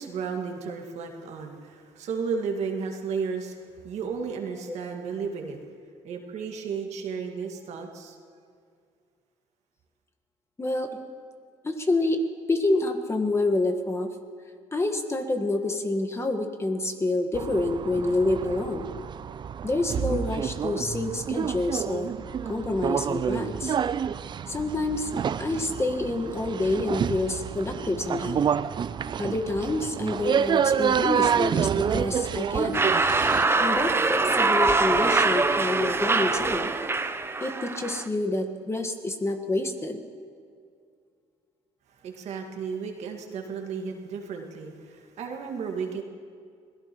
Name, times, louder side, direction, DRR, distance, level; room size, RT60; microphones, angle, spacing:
voice 1, 0.0-3.6 3.8-5.6 6.0-8.2 42.0-46.0, right 5 dB, 70° right, 3 dB, 1.9 m, -33 dB
voice 2, 10.6-11.0 11.6-14.1 14.7-18.9 19.6-22.1 22.4-23.8 24.5-25.1 25.4-28.6 29.2-32.8 33.6-36.7 37.4-40.0, left 2 dB, 20° left, 6 dB, 1.5 m, -28 dB
sound 1, 17.3-33.5, right 8 dB, 40° right, 0.4 m, -28 dB
sound 2, 32.7-38.1, right 3 dB, 20° right, 0.7 m, -23 dB
26.0 x 17.5 x 3.1 m, 2.2 s
cardioid pair, 90°, 12 cm